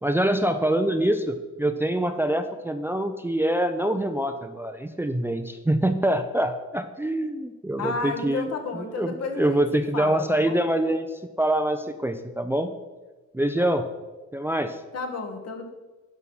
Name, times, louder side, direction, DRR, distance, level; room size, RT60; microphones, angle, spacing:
voice 1, 0.0-8.5 9.0-11.1 11.4-12.7 13.3-13.9 14.3-14.8, right 1 dB, 10° right, 8 dB, 0.6 m, -25 dB
voice 2, 7.8-10.6 14.9-15.7, left 4 dB, 55° left, 4 dB, 1.6 m, -32 dB
9.8 x 5.5 x 6.3 m, 1.2 s
cardioid pair, 90°, 30 cm